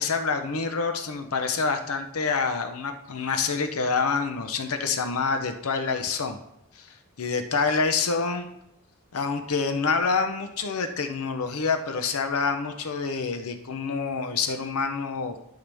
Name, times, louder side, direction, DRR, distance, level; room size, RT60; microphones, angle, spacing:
voice 1, 0.0-6.4 6.7-6.9 7.2-8.5 9.1-15.5, left 4 dB, 90° left, 7 dB, 0.7 m, -27 dB
12.0 x 5.7 x 3.5 m, 0.80 s
head